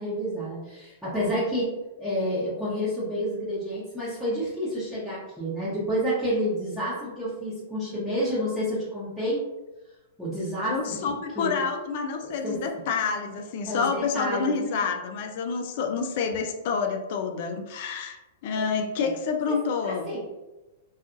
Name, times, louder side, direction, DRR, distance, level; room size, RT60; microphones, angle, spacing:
voice 1, 0.0-1.7 2.0-9.4 10.2-11.0 11.4-11.6 12.2-12.6 13.6-14.8 18.5-19.1 19.5-20.2, equal, ahead, -12 dB, 0.9 m, -29 dB
voice 2, 10.7-20.1, left 5 dB, 55° left, 5 dB, 0.4 m, -28 dB
2.6 x 2.3 x 2.5 m, 1.0 s
hypercardioid pair, 130°, 0 cm